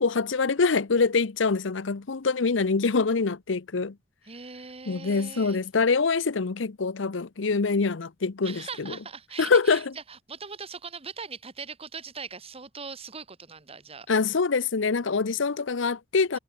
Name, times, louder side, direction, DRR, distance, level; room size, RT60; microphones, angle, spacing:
voice 1, 0.0-4.0 4.9-9.0 9.4-9.9 14.1-16.4, left 4 dB, 80° left, 0.8 m, -25 dB
voice 2, 4.2-5.6 8.4-14.1 15.1-15.3, right 5 dB, 30° right, 1.6 m, -40 dB
head